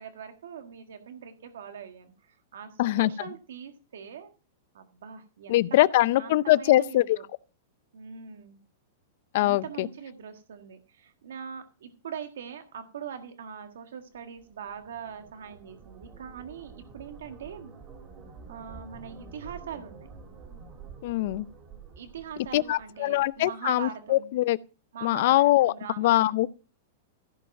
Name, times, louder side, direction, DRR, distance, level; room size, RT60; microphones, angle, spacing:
voice 1, 0.0-4.3 4.7-5.6 5.9-7.2 7.9-8.6 9.4-17.7 18.5-20.1 22.0-24.3 24.9-26.4, right 7 dB, 85° right, 1.6 m, -42 dB
voice 2, 2.8-3.1 5.5-7.2 9.3-9.9 21.0-21.4 22.5-24.6 25.0-26.5, left 16 dB, 55° left, 0.5 m, -23 dB
sound 1, 14.2-23.4, right 5 dB, 25° right, 2.5 m, -49 dB
15.5 x 5.2 x 5.9 m
supercardioid pair, 155°, 0 cm